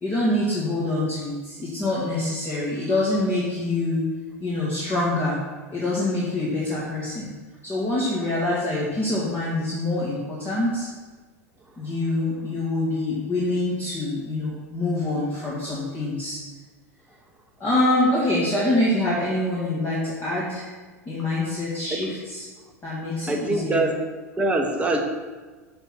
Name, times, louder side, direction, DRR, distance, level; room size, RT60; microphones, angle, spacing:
voice 1, 0.0-4.0 4.4-5.4 5.7-7.3 7.6-10.9 11.8-16.4 17.6-20.7 21.1-22.5 22.8-23.9, left 2 dB, 25° left, -7 dB, 2.1 m, -25 dB
voice 2, 23.3-24.0 24.4-25.0, right 2 dB, 15° right, 2 dB, 1.1 m, -23 dB
6.8 x 4.5 x 5.9 m, 1.3 s
figure-of-eight pair, 85°, 8 cm